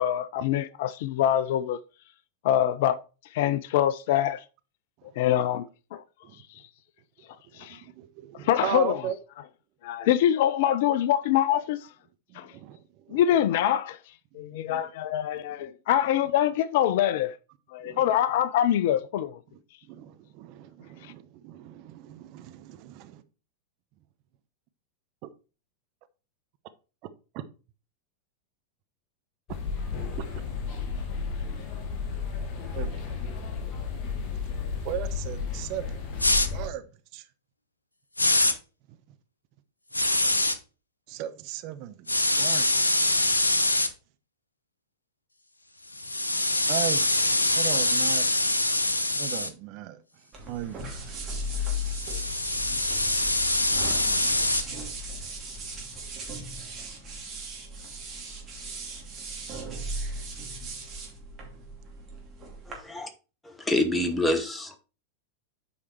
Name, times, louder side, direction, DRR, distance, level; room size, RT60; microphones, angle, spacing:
voice 1, 0.0-1.8 2.4-3.0 3.3-4.4 5.2-6.0 7.6-7.8 8.4-9.0 9.8-11.9 12.3-12.5 13.1-14.0 14.3-17.4 17.7-19.4, left 11 dB, 50° left, 0.4 m, -24 dB
voice 2, 7.5-9.2 12.3-12.8 13.1-13.2 14.7-14.8 17.8-18.0 19.9-23.2 25.2-25.3 27.3-27.4 30.2-30.3 32.7-33.0 34.8-36.0 36.5-36.8 37.1-37.2 41.1-42.7 43.0-43.2 46.7-47.0 47.5-48.3 49.1-50.0 50.5-50.9, right 12 dB, 40° right, 0.7 m, -36 dB
sound 1, 29.5-36.7, left 5 dB, 35° left, 1.8 m, -33 dB
sound 2, 36.2-36.5 38.2-38.5 39.9-40.6 42.1-43.9 45.9-49.5 51.6-54.6, left 2 dB, 80° left, 0.7 m, -24 dB
sound 3, 50.3-62.8, equal, 25° right, 2.8 m, -36 dB
voice 3, 62.7-63.1 63.4-64.8, left 1 dB, 10° left, 1.2 m, -27 dB
8.3 x 4.9 x 4.5 m
figure-of-eight pair, 90°, 0 cm